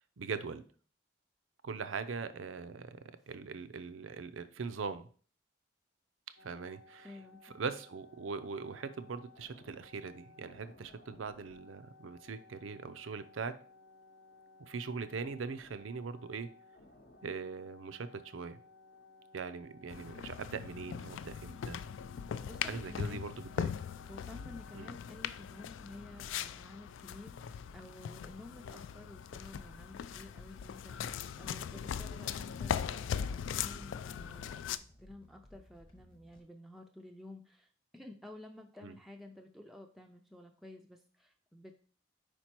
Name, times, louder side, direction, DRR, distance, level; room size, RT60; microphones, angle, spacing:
voice 1, 0.2-0.6 1.6-3.0 3.3-5.1 6.4-7.1 7.4-13.6 14.6-16.5 17.2-18.6 19.3-21.8 22.7-23.7 24.7-24.9 38.8-38.9, right 5 dB, 85° right, 12 dB, 0.5 m, -41 dB
sound 1, 6.4-24.9, left 3 dB, 55° left, 0.7 m, -59 dB
voice 2, 7.0-7.4 22.4-23.2 24.1-41.8, left 1 dB, ahead, 2 dB, 0.3 m, -52 dB
sound 2, 19.9-34.8, left 8 dB, 80° left, 0.3 m, -40 dB
sound 3, 29.4-36.4, equal, 25° left, 1.0 m, -60 dB
5.0 x 4.4 x 4.4 m, 0.43 s
head